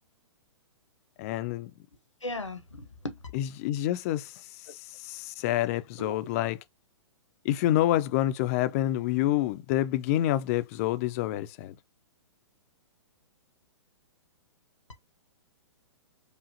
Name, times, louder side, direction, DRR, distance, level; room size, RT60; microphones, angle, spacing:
voice 1, 1.2-1.7 3.3-6.6 7.4-11.8, left 14 dB, 30° left, 0.4 m, -28 dB
voice 2, 2.2-3.2 6.0-6.2, left 1 dB, 85° left, 0.9 m, -37 dB
4.9 x 2.5 x 2.7 m
figure-of-eight pair, 115°, 15 cm